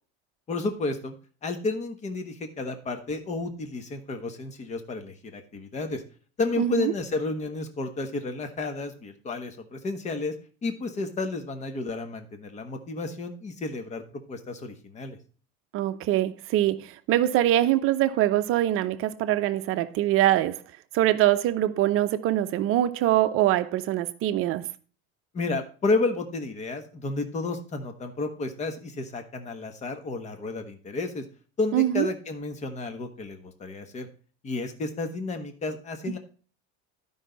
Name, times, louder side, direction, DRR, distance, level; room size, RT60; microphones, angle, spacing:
voice 1, 0.5-1.1 1.4-6.0 6.4-10.3 10.6-14.0 14.3-15.2 25.3-31.2 31.6-34.1 34.4-36.2, left 3 dB, 20° left, 1.2 m, -31 dB
voice 2, 6.6-6.9 15.7-20.6 20.9-24.7 31.7-32.1, right 13 dB, 45° right, 0.7 m, -23 dB
12.5 x 5.5 x 3.9 m
supercardioid pair, 140°, 31 cm